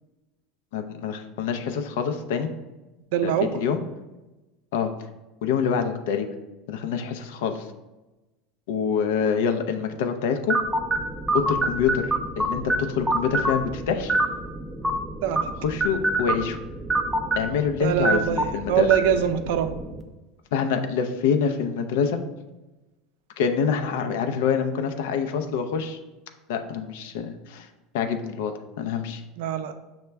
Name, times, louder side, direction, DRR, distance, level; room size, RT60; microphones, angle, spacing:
voice 1, 0.7-2.5 3.2-3.8 4.7-4.9 5.4-6.3 6.7-7.7 8.7-10.6 11.3-14.1 15.6-16.6 17.4-18.9 20.5-22.2 23.4-26.0 26.5-27.7 27.9-29.2, left 6 dB, 80° left, 6 dB, 0.4 m, -26 dB
voice 2, 3.1-3.5 15.2-15.5 17.8-19.7 29.4-29.7, right 9 dB, 75° right, 8 dB, 0.4 m, -23 dB
sound 1, 10.5-20.0, right 2 dB, 5° right, 0.4 m, -27 dB
5.7 x 2.2 x 3.3 m, 1.1 s
supercardioid pair, 120°, 0 cm